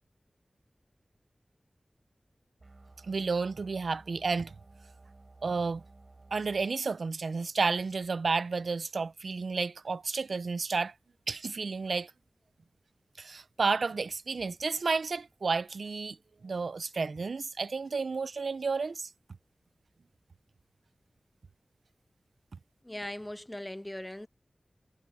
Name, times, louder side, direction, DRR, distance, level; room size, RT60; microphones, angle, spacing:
sound 1, 2.6-6.7, right 2 dB, 50° right, 4.3 m, -55 dB
voice 1, 3.0-4.5 5.4-5.8 6.3-10.9 11.3-12.1 13.2-16.2 16.4-19.1, right 4 dB, 90° right, 0.5 m, -31 dB
voice 2, 22.8-24.3, left 1 dB, 15° left, 0.4 m, -39 dB
wide cardioid pair, 80°, 0 cm